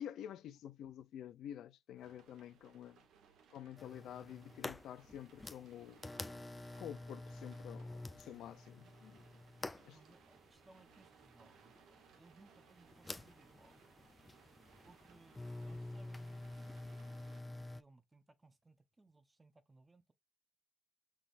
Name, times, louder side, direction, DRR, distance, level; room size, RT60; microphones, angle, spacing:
voice 1, 0.0-3.0 3.5-6.2 6.8-9.2 9.8-10.0, left 10 dB, 80° left, 0.4 m, -49 dB
sound 1, 2.0-17.4, right 6 dB, 80° right, 1.1 m, -66 dB
sound 2, 3.8-17.8, left 2 dB, 15° left, 0.3 m, -49 dB
voice 2, 9.7-13.8 14.8-17.1 17.4-20.1, right 2 dB, 20° right, 0.7 m, -65 dB
6.0 x 3.5 x 2.4 m
cardioid pair, 90°, 0 cm